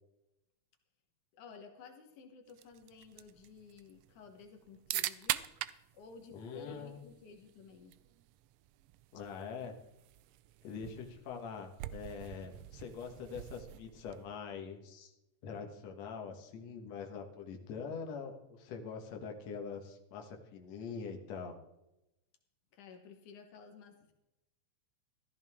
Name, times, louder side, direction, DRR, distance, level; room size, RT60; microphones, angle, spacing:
voice 1, 1.4-5.5 5.9-8.0 22.7-24.1, left 5 dB, 80° left, 4 dB, 2.7 m, -54 dB
sound 1, 2.5-14.4, right 15 dB, 90° right, 1.4 m, -44 dB
voice 2, 6.3-7.0 9.1-9.8 10.6-15.1 15.4-21.6, left 5 dB, 65° left, 2 dB, 2.5 m, -44 dB
14.5 x 14.0 x 3.6 m, 0.91 s
omnidirectional pair, 3.5 m